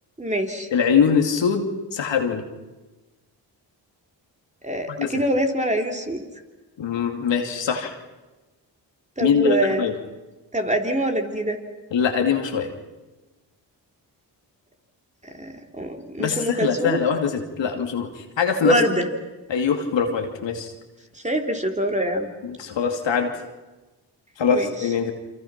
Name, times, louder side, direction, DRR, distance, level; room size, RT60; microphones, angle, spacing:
voice 1, 0.2-0.7 4.6-6.2 9.2-9.9 10.5-11.6 15.4-17.0 18.6-19.1 21.1-22.3 24.5-24.7, right 1 dB, 15° right, 3 dB, 3.6 m, -24 dB
voice 2, 0.7-2.4 4.9-5.1 6.8-7.9 9.2-9.9 11.9-12.7 16.2-18.7 19.5-20.7 22.4-23.3 24.4-25.1, left 6 dB, 75° left, 4 dB, 2.7 m, -23 dB
28.5 x 25.0 x 6.0 m, 1.2 s
supercardioid pair, 50°, 44 cm